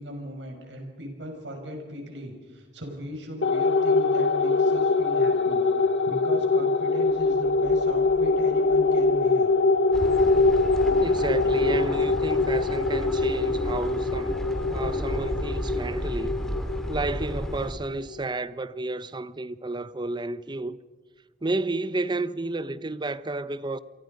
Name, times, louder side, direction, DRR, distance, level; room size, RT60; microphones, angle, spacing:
voice 1, 0.0-9.5, equal, 85° right, 5.7 m, -38 dB
sound 1, 3.4-18.2, left 3 dB, 70° left, 1.0 m, -23 dB
sound 2, 9.9-17.7, equal, 5° left, 2.7 m, -33 dB
voice 2, 11.0-14.4 14.7-16.4 16.9-20.8 21.4-23.8, right 2 dB, 25° right, 0.8 m, -31 dB
28.5 x 24.0 x 5.3 m
head